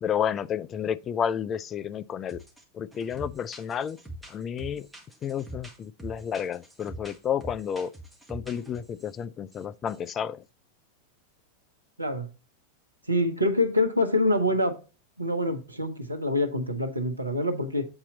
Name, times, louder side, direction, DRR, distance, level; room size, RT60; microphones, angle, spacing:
voice 1, 0.0-2.4 2.7-4.0 4.3-4.9 5.2-7.9 8.3-10.4, left 8 dB, 25° left, 0.4 m, -31 dB
sound 1, 2.3-2.6 2.9-9.2 9.5-9.6 9.9-10.1, right 1 dB, 5° right, 1.6 m, -44 dB
voice 2, 13.1-14.8 15.2-17.9, left 1 dB, 85° right, 0.9 m, -25 dB
7.9 x 4.3 x 3.9 m
figure-of-eight pair, 90°, 0 cm